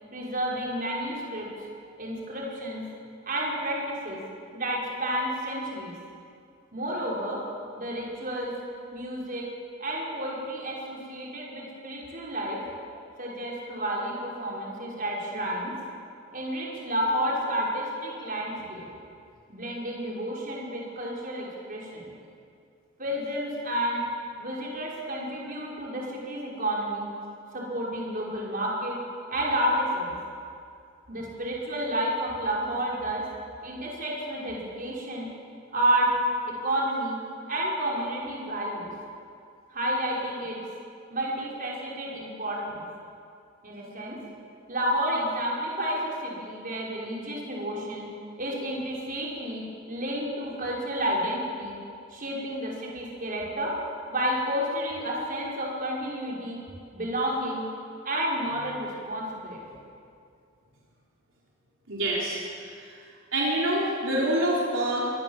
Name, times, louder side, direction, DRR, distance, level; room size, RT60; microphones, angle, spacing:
voice 1, 0.1-1.5 2.0-2.8 3.3-4.2 4.5-5.9 6.7-7.4 7.8-8.5 8.9-9.5 9.8-12.6 13.2-15.7 16.3-18.8 19.5-22.1 23.0-24.0 24.4-27.1 27.5-29.0 29.3-30.1 31.1-33.2 33.6-35.3 35.7-36.1 36.5-37.2 37.5-38.9 39.7-40.6 41.1-42.8 43.6-44.2 44.7-48.0 48.4-51.7 52.1-53.7 54.1-56.6 56.9-57.6 58.0-59.6, right 1 dB, 45° right, -3 dB, 5.7 m, -30 dB
voice 2, 61.9-62.4 62.8-62.9 63.3-65.0, right 1 dB, 65° right, -5 dB, 4.2 m, -26 dB
25.0 x 20.0 x 7.5 m, 2.4 s
head